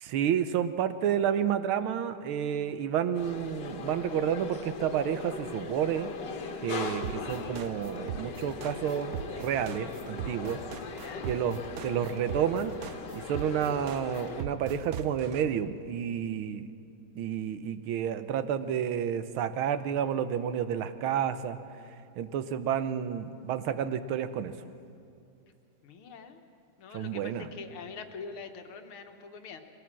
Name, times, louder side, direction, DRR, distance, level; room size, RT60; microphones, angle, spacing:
voice 1, 0.0-6.1 6.6-10.6 11.3-12.8 13.1-16.7 17.1-21.6 22.2-24.6 26.9-27.5, right 9 dB, 85° right, 11 dB, 1.7 m, -30 dB
sound 1, 3.1-14.4, left 4 dB, 60° left, 1.8 m, -40 dB
sound 2, 7.0-15.4, right 9 dB, 60° right, 1.0 m, -39 dB
voice 2, 25.8-26.4 26.8-29.6, left 5 dB, 85° left, 6 dB, 2.1 m, -44 dB
22.0 x 16.0 x 7.4 m, 2.5 s
omnidirectional pair, 2.3 m